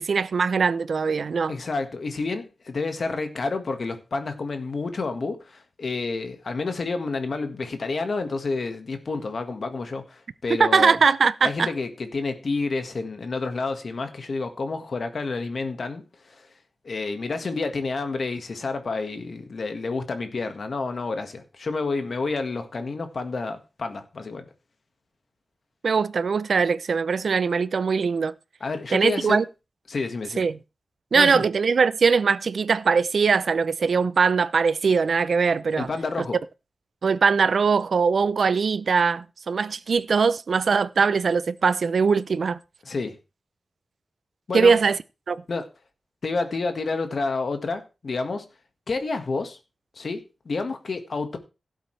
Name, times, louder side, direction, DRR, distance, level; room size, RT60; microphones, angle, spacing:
voice 1, 0.0-1.6 10.6-11.7 25.8-28.3 28.9-29.4 30.4-30.6 31.1-35.9 37.0-42.6 44.5-45.0 45.3-45.4, right 5 dB, 65° right, 0.5 m, -21 dB
voice 2, 1.5-11.0 11.4-16.0 16.3-16.5 16.8-24.5 28.6-29.4 29.9-30.4 31.1-31.4 35.8-36.4 42.8-43.2 44.5-44.8 45.5-45.7 46.2-48.5 48.9-49.6 49.9-51.4, left 3 dB, 55° left, 1.7 m, -29 dB
16.5 x 8.2 x 3.3 m
wide cardioid pair, 155°, 0 cm